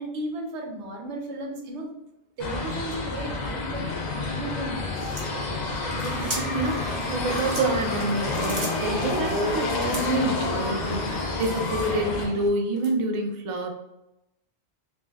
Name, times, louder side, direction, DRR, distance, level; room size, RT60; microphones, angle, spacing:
voice 1, 0.0-1.9 2.4-5.1, right 1 dB, 90° right, 2 dB, 1.0 m, -35 dB
sound 1, 2.4-12.3, left 3 dB, 50° left, 0.6 m, -30 dB
sound 2, 4.9-6.7 7.2-9.1 9.8-10.3 10.8-12.1 12.8-12.9, right 1 dB, 20° right, 0.6 m, -38 dB
Engine, 5.1-12.5, left 2 dB, 85° left, 0.9 m, -32 dB
voice 2, 5.9-13.7, right 2 dB, 60° right, 2 dB, 0.3 m, -28 dB
2.6 x 2.1 x 3.3 m, 0.89 s
omnidirectional pair, 1.1 m